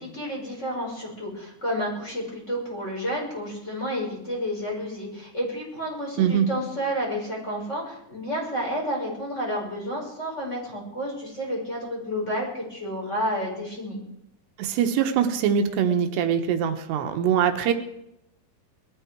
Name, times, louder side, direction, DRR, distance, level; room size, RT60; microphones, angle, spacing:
voice 1, 0.0-14.0, equal, 15° left, -2 dB, 5.5 m, -30 dB
voice 2, 6.2-6.5 14.6-17.7, right 8 dB, 85° right, 6 dB, 3.3 m, -23 dB
20.5 x 14.0 x 4.7 m, 0.82 s
omnidirectional pair, 4.8 m